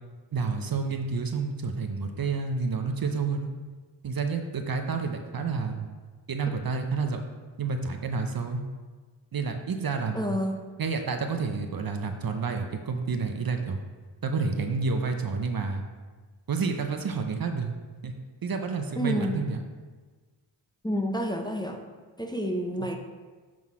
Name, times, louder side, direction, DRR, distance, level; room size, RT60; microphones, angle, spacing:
voice 1, 0.3-3.5 4.0-5.9 6.3-7.2 7.6-8.6 9.3-10.4 10.8-13.8 14.2-15.8 16.5-17.7 18.0-18.1 18.4-19.6, right 4 dB, 50° right, 5 dB, 0.8 m, -29 dB
voice 2, 10.1-10.6 19.0-19.4 20.8-21.8 22.2-23.0, equal, 10° left, 2 dB, 0.8 m, -29 dB
7.5 x 3.9 x 4.8 m, 1.4 s
cardioid pair, 40°, 47 cm